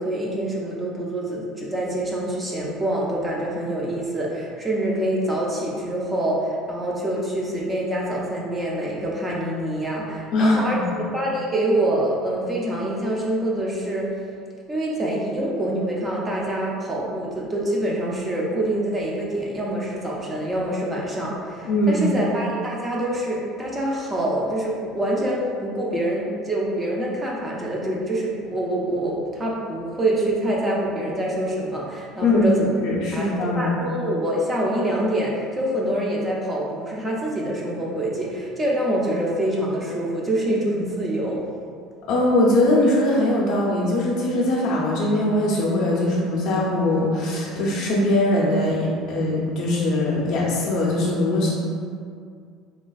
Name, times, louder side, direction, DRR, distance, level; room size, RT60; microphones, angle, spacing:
voice 1, 0.0-14.1 14.7-32.7 33.1-33.3 33.5-41.4, right 1 dB, 15° right, -4 dB, 0.4 m, -25 dB
voice 2, 10.3-10.9 21.7-22.1 32.2-32.5 32.8-33.7 42.1-51.5, left 1 dB, 55° left, -4 dB, 0.4 m, -21 dB
3.3 x 2.3 x 2.3 m, 2.2 s
cardioid pair, 160°, 0 cm